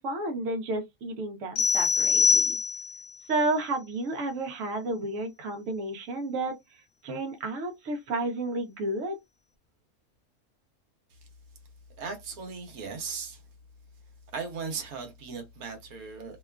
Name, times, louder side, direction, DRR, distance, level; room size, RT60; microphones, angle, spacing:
voice 1, 0.0-2.6 3.3-6.5 7.0-9.2, right 2 dB, 65° right, 1.0 m, -31 dB
sound 1, 1.6-3.1, left 5 dB, 65° left, 0.8 m, -23 dB
voice 2, 12.0-13.4 14.3-16.4, right 5 dB, 85° right, 1.2 m, -37 dB
2.8 x 2.3 x 2.2 m
omnidirectional pair, 1.5 m